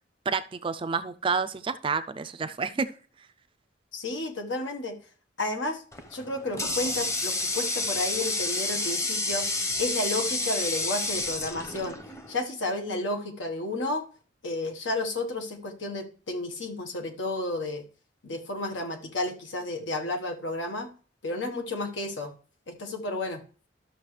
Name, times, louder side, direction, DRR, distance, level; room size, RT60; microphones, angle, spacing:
voice 1, 0.3-2.9, right 5 dB, 30° right, 13 dB, 0.4 m, -29 dB
voice 2, 3.9-5.0 5.4-5.8 6.1-9.5 9.8-12.0 12.3-14.0 14.4-17.8 18.2-20.9 21.2-22.3 22.7-23.4, left 2 dB, 85° left, 4 dB, 1.3 m, -32 dB
Water tap faucet, 5.9-12.4, left 2 dB, 15° left, 0.8 m, -30 dB
12.5 x 6.3 x 3.2 m, 0.41 s
head